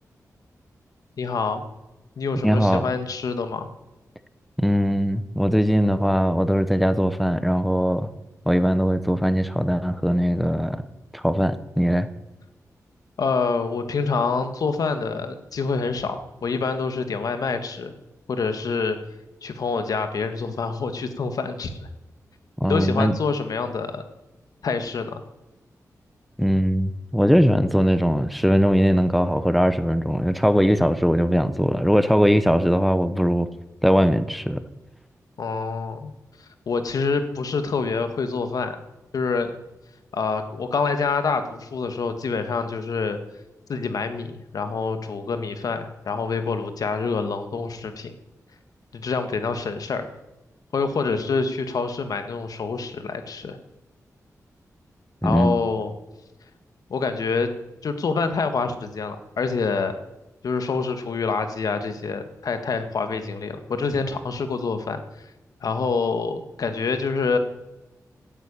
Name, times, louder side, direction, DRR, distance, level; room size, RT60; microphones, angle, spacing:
voice 1, 1.2-1.6 2.2-3.7 13.2-17.9 18.3-19.0 19.4-21.9 22.6-24.0 24.6-25.2 35.4-36.1 36.7-38.8 39.1-39.5 40.1-43.2 43.7-48.1 48.9-50.1 50.7-53.6 55.2-55.9 56.9-57.5 57.8-59.9 60.4-65.0 65.6-67.4, left 4 dB, 75° left, 1.7 m, -26 dB
voice 2, 2.4-2.8 4.6-8.1 8.5-10.8 11.1-12.1 22.6-23.1 26.4-33.5 33.8-34.6 55.2-55.6, equal, ahead, 0.8 m, -20 dB
16.0 x 9.0 x 8.9 m
wide cardioid pair, 115°, 6 cm